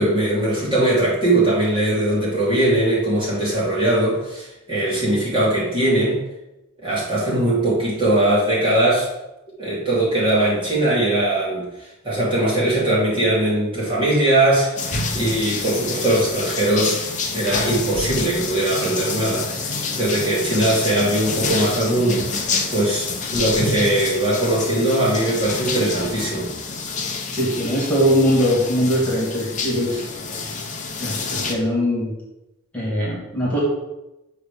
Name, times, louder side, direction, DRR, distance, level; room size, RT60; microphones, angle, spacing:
voice 1, 0.0-6.2 6.8-9.1 9.6-11.7 12.0-17.0 17.3-22.4 22.7-26.5, right 1 dB, 25° right, -7 dB, 2.8 m, -20 dB
sound 1, 14.8-31.6, left 3 dB, 35° left, 1.0 m, -28 dB
voice 2, 27.3-30.1 31.0-32.1 32.7-33.6, equal, 5° left, -7 dB, 2.7 m, -21 dB
8.5 x 3.4 x 6.4 m, 0.95 s
head